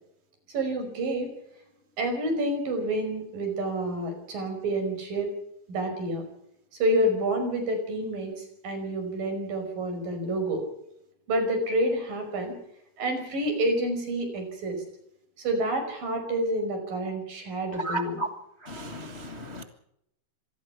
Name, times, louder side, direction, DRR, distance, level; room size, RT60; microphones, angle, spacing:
voice 1, 0.5-1.3 2.0-5.3 5.7-6.2 6.7-10.6 11.3-12.5 13.0-14.8 15.4-18.2, right 1 dB, 60° right, 7.0 m, -28 dB
voice 2, 17.8-18.3 18.7-19.6, right 2 dB, 70° left, 0.6 m, -34 dB
26.0 x 19.0 x 5.9 m
omnidirectional pair, 4.5 m